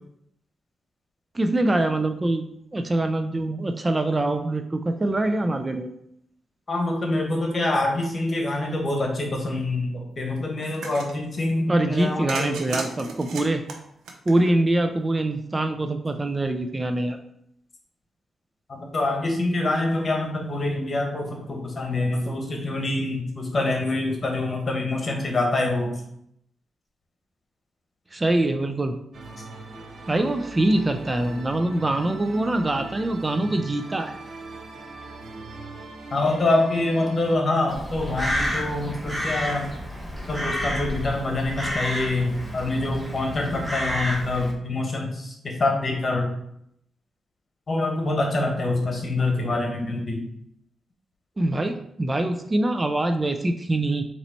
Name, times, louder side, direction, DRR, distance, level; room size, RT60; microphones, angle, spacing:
voice 1, 1.3-2.5 2.7-5.9 11.7-13.6 14.3-17.2 28.1-29.0 30.1-34.2 51.4-54.0, right 1 dB, 25° right, 7 dB, 0.4 m, -24 dB
voice 2, 6.7-12.6 18.7-25.9 36.1-39.7 40.3-46.3 47.7-50.2, left 2 dB, 40° left, 1 dB, 1.2 m, -25 dB
sound 1, 10.6-11.1 12.3-14.8, right 4 dB, 85° right, 0.6 m, -34 dB
sound 2, 29.1-37.3, right 3 dB, 60° right, 0.8 m, -40 dB
Crow, 37.7-44.5, equal, 10° right, 1.1 m, -30 dB
4.0 x 3.0 x 4.3 m, 0.74 s
cardioid pair, 75°, 0 cm